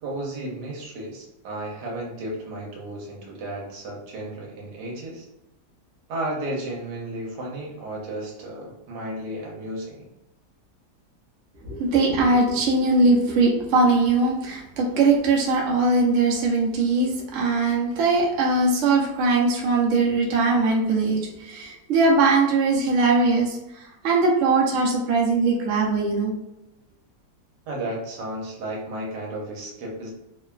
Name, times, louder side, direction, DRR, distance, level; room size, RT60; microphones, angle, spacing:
voice 1, 0.0-5.3 6.1-10.1 27.7-30.1, right 1 dB, 80° right, -2 dB, 1.3 m, -33 dB
voice 2, 11.6-23.6 24.0-26.3, right 3 dB, 60° right, -2 dB, 0.8 m, -21 dB
3.0 x 2.2 x 2.3 m, 0.90 s
omnidirectional pair, 1.8 m